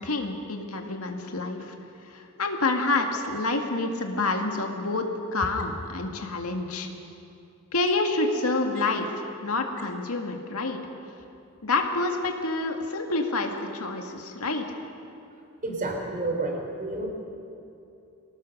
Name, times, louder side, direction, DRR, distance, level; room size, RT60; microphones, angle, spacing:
voice 1, 0.0-1.7 2.1-6.9 7.7-9.2 9.4-10.8 11.6-14.8, left 3 dB, 85° left, 3 dB, 2.0 m, -28 dB
voice 2, 15.6-17.1, right 2 dB, 40° right, 1 dB, 3.9 m, -30 dB
24.0 x 18.0 x 6.6 m, 2.7 s
head